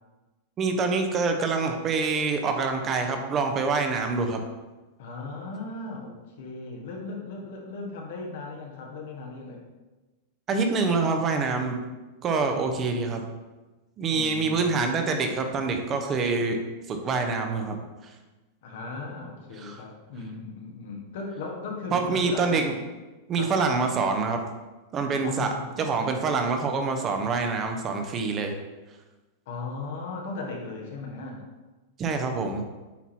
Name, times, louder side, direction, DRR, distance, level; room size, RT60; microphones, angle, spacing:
voice 1, 0.6-4.4 10.5-11.8 12.2-13.2 14.0-16.6 16.9-18.1 19.6-19.8 21.9-22.8 23.3-24.4 24.9-25.5 25.8-28.5 32.0-32.6, right 4 dB, 30° right, 5 dB, 0.9 m, -26 dB
voice 2, 5.0-9.6 14.0-14.7 18.6-22.6 23.3-23.5 25.2-25.9 29.5-31.4, left 3 dB, 70° left, 0 dB, 1.4 m, -37 dB
8.3 x 2.9 x 4.3 m, 1.2 s
supercardioid pair, 135°, 0 cm